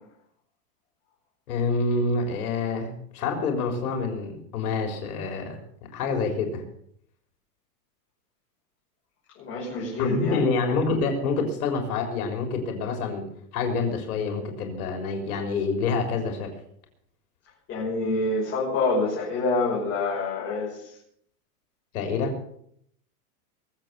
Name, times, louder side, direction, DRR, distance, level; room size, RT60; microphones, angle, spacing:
voice 1, 1.5-5.6 5.9-6.6 10.0-13.2 13.5-16.5 21.9-22.3, left 4 dB, 70° left, 4 dB, 4.0 m, -27 dB
voice 2, 9.4-10.4 17.7-20.9, left 3 dB, 25° left, -6 dB, 5.9 m, -26 dB
22.5 x 7.9 x 6.9 m, 0.69 s
supercardioid pair, 155°, 46 cm